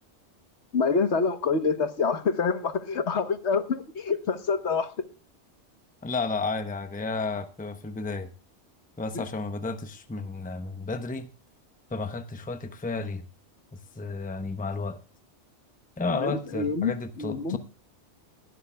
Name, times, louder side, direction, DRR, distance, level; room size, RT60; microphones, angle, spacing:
voice 1, 0.7-4.9 9.1-9.2 16.1-16.9 17.2-17.6, left 5 dB, 70° left, 1.4 m, -26 dB
voice 2, 6.0-8.3 9.0-11.3 11.9-13.2 14.0-15.0 16.0-17.6, left 3 dB, 10° left, 0.7 m, -32 dB
17.5 x 12.0 x 2.3 m
omnidirectional pair, 1.2 m